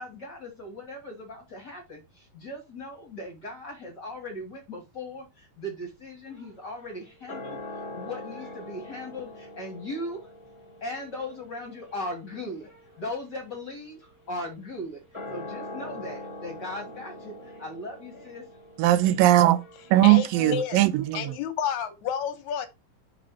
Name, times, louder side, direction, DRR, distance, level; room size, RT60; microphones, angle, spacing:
voice 1, 0.0-10.3 10.8-12.7 13.0-15.0 15.3-18.5 19.9-20.1, left 1 dB, 40° left, 1.8 m, -38 dB
sound 1, 6.3-20.0, left 1 dB, 10° left, 1.5 m, -43 dB
voice 2, 18.8-19.6 19.9-21.4, right 14 dB, 90° right, 2.3 m, -19 dB
voice 3, 20.0-20.8 21.1-22.7, left 8 dB, 70° left, 2.1 m, -30 dB
6.0 x 4.2 x 4.7 m
omnidirectional pair, 4.0 m